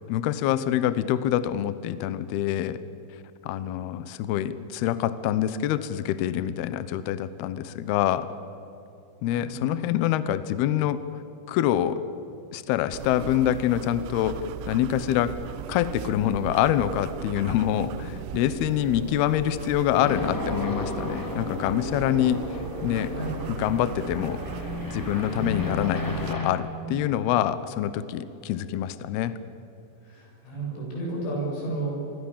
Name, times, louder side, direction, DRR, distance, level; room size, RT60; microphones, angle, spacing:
voice 1, 0.1-2.8 3.4-8.3 9.2-11.0 11.5-12.0 12.5-14.4 14.7-15.3 15.7-22.4 22.8-23.1 23.5-24.4 24.9-29.4, left 11 dB, 85° left, 13 dB, 2.2 m, -25 dB
sound 1, 12.9-26.3, right 12 dB, 85° right, 3.6 m, -38 dB
sound 2, 20.0-26.5, left 2 dB, 5° left, 2.7 m, -33 dB
voice 2, 30.0-32.0, right 2 dB, 60° left, -2 dB, 10.0 m, -32 dB
27.5 x 22.0 x 7.3 m, 2.9 s
omnidirectional pair, 5.9 m